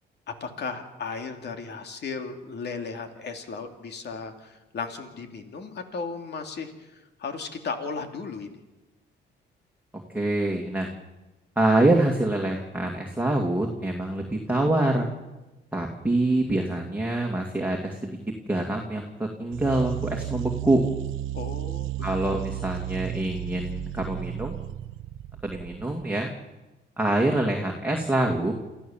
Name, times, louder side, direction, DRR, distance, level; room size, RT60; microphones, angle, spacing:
voice 1, 0.3-8.5 21.3-22.2, left 4 dB, 60° left, 6 dB, 2.8 m, -35 dB
voice 2, 9.9-10.9 11.6-15.1 15.7-18.2 18.5-20.8 22.0-24.6 25.4-26.3 27.0-28.5, right 1 dB, 10° right, 0 dB, 2.3 m, -25 dB
sound 1, 19.5-26.0, right 14 dB, 90° right, 0.7 m, -34 dB
28.0 x 14.5 x 7.3 m, 1.1 s
cardioid pair, 90°, 20 cm